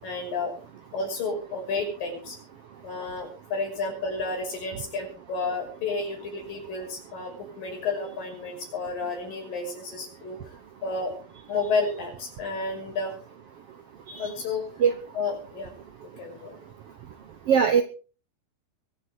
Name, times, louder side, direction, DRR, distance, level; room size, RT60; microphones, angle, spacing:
voice 1, 0.0-0.5 0.9-2.4 2.8-10.4 10.8-11.1 11.5-13.1 14.2-14.6 15.2-15.7 16.2-16.6, left 3 dB, 75° left, 1 dB, 7.6 m, -31 dB
voice 2, 17.5-17.8, right 7 dB, 70° right, 8 dB, 1.4 m, -20 dB
23.0 x 8.3 x 5.0 m, 0.37 s
omnidirectional pair, 4.0 m